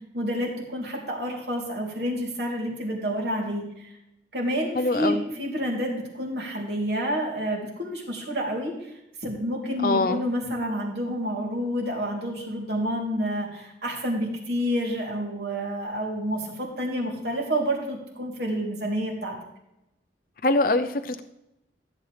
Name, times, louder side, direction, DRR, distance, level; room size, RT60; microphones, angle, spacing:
voice 1, 0.1-3.9 4.3-19.3, equal, 65° right, -1 dB, 3.2 m, -29 dB
voice 2, 4.8-5.2 9.8-10.2 20.4-21.2, left 2 dB, 50° left, 8 dB, 0.6 m, -23 dB
14.5 x 8.3 x 3.3 m, 0.86 s
head